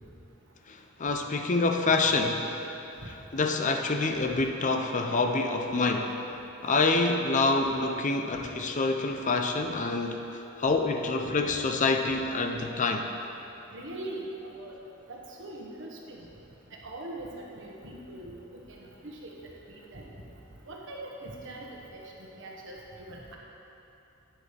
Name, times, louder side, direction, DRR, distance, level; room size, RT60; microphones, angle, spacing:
voice 1, 0.7-2.5 3.1-6.2 6.6-13.1, left 3 dB, 40° left, 4 dB, 0.6 m, -27 dB
voice 2, 13.7-14.8 15.1-16.2 16.7-18.3 18.8-19.3 19.7-20.1 20.6-22.8 23.1-23.4, right 1 dB, 65° right, -2 dB, 1.4 m, -42 dB
11.0 x 9.0 x 3.3 m, 2.9 s
head